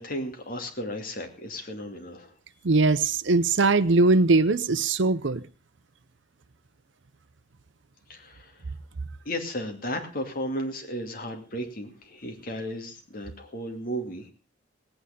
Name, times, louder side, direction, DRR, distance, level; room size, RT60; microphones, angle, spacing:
voice 1, 0.0-2.3 8.1-8.6 9.2-14.3, equal, 45° left, 2.6 m, -34 dB
voice 2, 2.6-5.4, right 3 dB, 70° right, 0.7 m, -21 dB
18.0 x 9.1 x 5.2 m
head